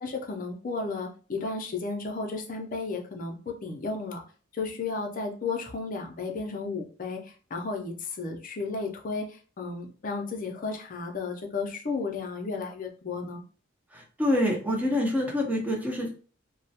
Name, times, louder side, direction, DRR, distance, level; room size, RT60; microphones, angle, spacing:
voice 1, 0.0-4.2 4.5-7.2 7.5-13.4, left 4 dB, 40° left, 2 dB, 0.4 m, -33 dB
voice 2, 13.9-16.1, left 1 dB, 10° right, -1 dB, 0.5 m, -26 dB
2.3 x 2.1 x 2.6 m, 0.38 s
head